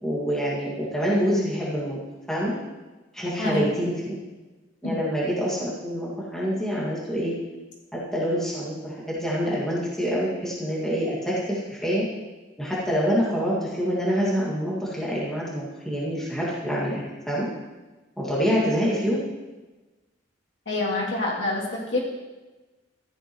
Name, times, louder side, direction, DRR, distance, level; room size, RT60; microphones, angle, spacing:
voice 1, 0.0-2.0 2.3-2.5 3.1-4.2 4.8-7.3 8.1-12.1 12.6-17.5 18.2-19.2, equal, 5° left, -8 dB, 2.0 m, -26 dB
voice 2, 20.7-22.0, left 2 dB, 65° left, -5 dB, 2.7 m, -26 dB
14.0 x 8.1 x 3.1 m, 1.2 s
head